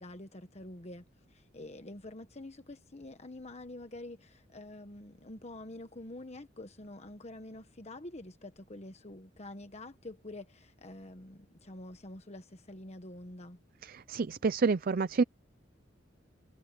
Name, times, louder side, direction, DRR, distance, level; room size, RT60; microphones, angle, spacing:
voice 1, 0.0-13.6, left 1 dB, 35° left, 1.3 m, -47 dB
voice 2, 13.8-15.2, right 4 dB, 50° right, 0.5 m, -28 dB
head